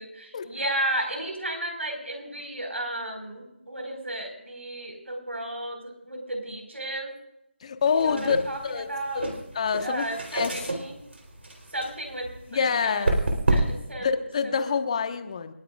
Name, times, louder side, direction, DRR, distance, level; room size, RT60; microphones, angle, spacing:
voice 1, 0.0-7.1 7.9-9.2 9.8-11.0 11.7-13.1 13.5-14.7, right 1 dB, 90° right, 3 dB, 4.9 m, -34 dB
voice 2, 7.6-8.4 8.6-8.9 9.1-9.3 9.5-10.1 10.3-10.5 12.5-13.2 14.0-15.5, left 6 dB, 30° left, 8 dB, 1.2 m, -26 dB
sound 1, 7.8-13.9, right 2 dB, 70° right, 3.7 m, -30 dB
29.5 x 10.0 x 2.4 m, 0.86 s
figure-of-eight pair, 160°, 7 cm